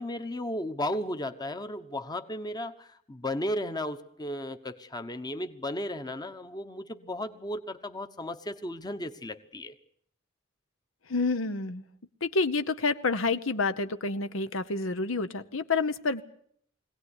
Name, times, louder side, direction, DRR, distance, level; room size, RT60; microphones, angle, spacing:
voice 1, 0.0-9.8, left 1 dB, 20° left, 9 dB, 1.1 m, -35 dB
voice 2, 11.1-11.8 12.2-16.2, left 3 dB, 75° left, 11 dB, 1.0 m, -28 dB
22.5 x 17.5 x 9.8 m, 0.68 s
head